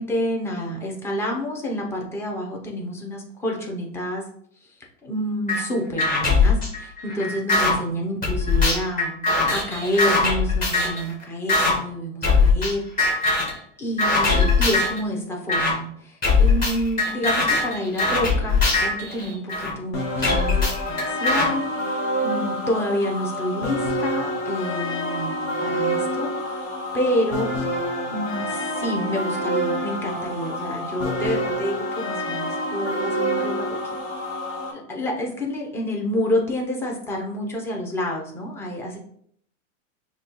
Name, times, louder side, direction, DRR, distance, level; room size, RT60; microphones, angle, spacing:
voice 1, 0.0-4.2 4.6-4.7 5.0-13.4 13.8-27.5 28.1-34.0 34.7-39.0, equal, 5° left, -1 dB, 0.5 m, -28 dB
sound 1, 5.5-5.6 6.0-7.7 8.2-11.0 11.5-11.7 12.2-12.7 13.0-13.6 14.0-15.0 15.5-15.7 16.2-19.7 20.2-21.5, left 3 dB, 20° left, 1.4 m, -20 dB
sound 2, 19.9-34.7, equal, 50° left, 1.0 m, -27 dB
5.9 x 2.3 x 2.9 m, 0.65 s
supercardioid pair, 140°, 38 cm